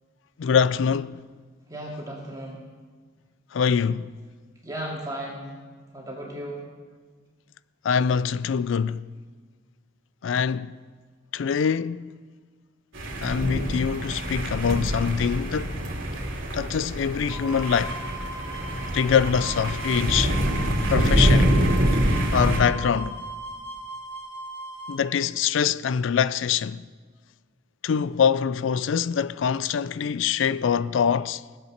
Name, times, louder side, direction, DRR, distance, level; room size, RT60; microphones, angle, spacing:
voice 1, 0.4-1.2 3.5-4.1 7.8-9.1 10.2-10.8 11.3-12.1 13.2-15.8 16.5-18.0 18.9-20.4 20.9-21.5 22.3-23.2 24.9-26.8 27.8-31.4, left 7 dB, 75° left, 0.4 m, -24 dB
voice 2, 1.7-2.6 4.6-5.5 5.9-6.6, right 1 dB, 20° right, 2.4 m, -35 dB
sound 1, 12.9-22.6, equal, 80° right, 2.5 m, -25 dB
sound 2, 17.3-25.0, right 2 dB, 10° left, 1.7 m, -38 dB
17.5 x 8.1 x 6.5 m
head